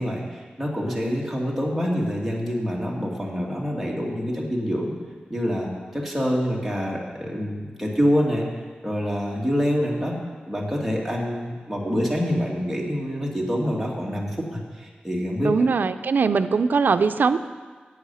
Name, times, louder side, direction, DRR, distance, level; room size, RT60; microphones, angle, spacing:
voice 1, 0.0-4.9 5.3-8.5 8.8-10.1 10.5-15.7, equal, ahead, -3 dB, 2.2 m, -26 dB
voice 2, 15.4-17.4, right 5 dB, 75° right, 11 dB, 0.5 m, -21 dB
13.0 x 8.5 x 5.6 m, 1.5 s
wide cardioid pair, 100°, 3 cm